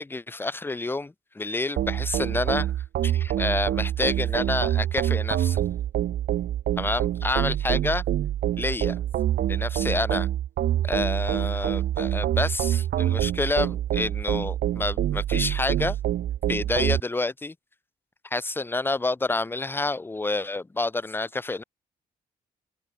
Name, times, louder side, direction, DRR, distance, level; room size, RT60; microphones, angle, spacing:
voice 1, 0.0-2.7 3.0-5.6 6.8-8.0 8.6-9.0 9.5-10.3 10.8-16.0 16.5-17.5 18.3-21.6, left 2 dB, 10° left, 0.5 m, -28 dB
sound 1, 1.8-17.0, right 12 dB, 70° right, 0.7 m, -26 dB
supercardioid pair, 60°, 17 cm